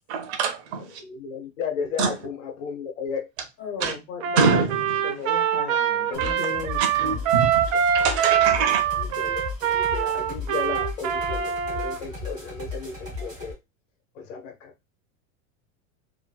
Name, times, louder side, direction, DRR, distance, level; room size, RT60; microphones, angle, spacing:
voice 1, 0.1-1.0 2.0-2.1 3.8-3.9 4.4-5.1 6.2-6.3 6.8-7.6 7.9-8.8, right 5 dB, 55° right, 0.8 m, -25 dB
voice 2, 0.8-3.3 8.0-8.4 8.9-13.6 14.1-14.7, left 5 dB, 70° left, 1.1 m, -34 dB
voice 3, 3.6-4.6 5.0-6.9, left 5 dB, 45° left, 1.2 m, -35 dB
Trumpet, 4.2-12.0, right 9 dB, 85° right, 0.7 m, -24 dB
sound 1, 6.1-13.5, left 3 dB, 10° right, 0.9 m, -36 dB
3.0 x 2.7 x 2.3 m
supercardioid pair, 175°, 40 cm